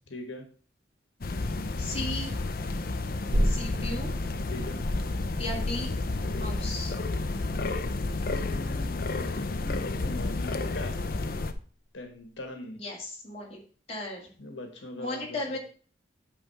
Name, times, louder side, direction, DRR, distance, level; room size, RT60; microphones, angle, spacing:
voice 1, 0.1-0.5 4.5-4.8 8.2-11.0 11.9-12.8 14.4-15.6, left 2 dB, 85° left, 5 dB, 1.3 m, -41 dB
sound 1, 1.2-11.5, left 2 dB, 50° left, 0.6 m, -31 dB
voice 2, 1.8-2.4 3.4-4.1 5.4-5.9 6.4-6.9 12.8-13.6 13.9-14.3 15.0-15.6, left 2 dB, 35° left, -2 dB, 2.0 m, -35 dB
sound 2, 3.3-10.6 11.0-11.1, equal, 70° right, 1.9 m, -34 dB
8.6 x 3.5 x 5.5 m, 0.42 s
head